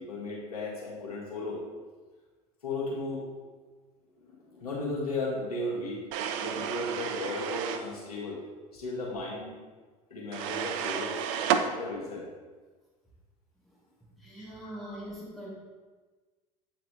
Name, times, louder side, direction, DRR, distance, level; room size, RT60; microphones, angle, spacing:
voice 1, 0.0-1.6 2.6-3.2 4.2-6.0 6.4-8.4 8.7-9.6 10.1-11.2 11.6-12.2 14.3-14.9, left 2 dB, 80° left, -5 dB, 1.8 m, -35 dB
sound 1, 6.1-7.9 10.3-11.7, right 8 dB, 60° right, 0.5 m, -31 dB
voice 2, 14.2-15.5, equal, ahead, -6 dB, 1.9 m, -42 dB
8.3 x 4.0 x 3.3 m, 1.4 s
figure-of-eight pair, 65°, 19 cm